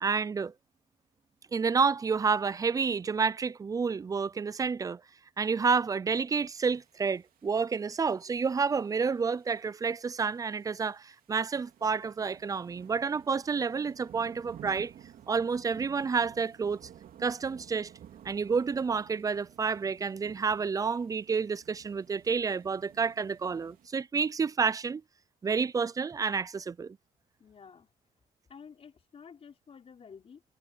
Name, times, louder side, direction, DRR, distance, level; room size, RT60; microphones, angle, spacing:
voice 1, 0.0-0.5 1.5-5.0 5.4-14.9 15.3-16.9 17.2-17.9 18.2-25.0 25.4-27.0, right 5 dB, 20° right, 0.4 m, -29 dB
sound 1, 6.7-23.9, right 10 dB, 55° right, 3.1 m, -54 dB
voice 2, 27.4-27.9 28.5-30.4, left 6 dB, 35° left, 3.8 m, -51 dB
cardioid pair, 110°, 17 cm